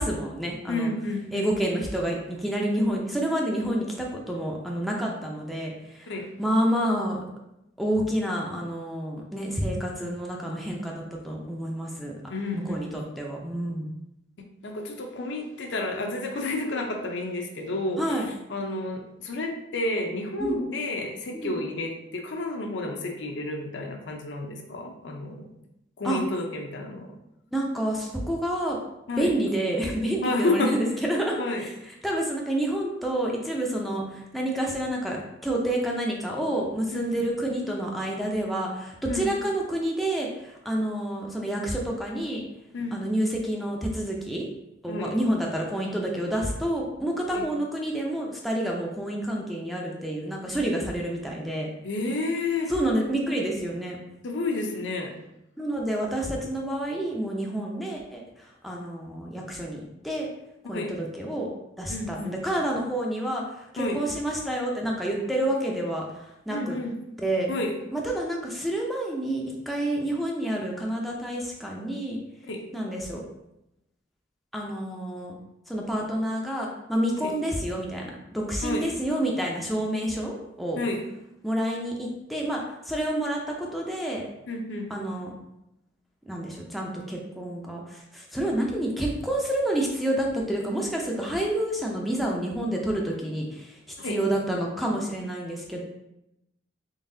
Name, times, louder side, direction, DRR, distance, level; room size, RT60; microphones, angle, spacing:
voice 1, 0.0-0.9 1.3-6.1 6.4-7.2 7.8-12.1 12.5-13.9 18.0-18.3 20.4-20.6 21.3-21.6 26.0-26.2 27.5-28.8 29.2-31.7 32.0-42.4 42.9-44.5 44.8-51.7 52.7-54.0 55.6-60.3 60.6-61.5 61.8-66.8 67.2-67.5 67.9-72.2 72.7-73.2 74.5-75.4 75.7-80.8 81.4-84.2 84.9-85.3 86.3-95.8, right 1 dB, ahead, -2 dB, 0.4 m, -29 dB
voice 2, 0.7-1.5 6.1-6.3 12.3-12.8 14.6-18.0 18.5-25.5 26.0-27.1 29.1-29.3 30.2-30.9 31.4-31.7 36.9-37.2 39.1-39.3 42.7-43.0 44.9-45.1 47.3-47.4 51.8-52.7 54.2-55.2 60.7-60.9 61.9-62.3 63.8-64.0 66.5-66.9 67.5-67.7 72.4-72.6 77.2-77.3 78.6-78.9 80.8-81.0 84.5-84.9 94.0-94.2, left 2 dB, 70° left, 2 dB, 0.6 m, -30 dB
3.9 x 3.6 x 2.6 m, 0.87 s
head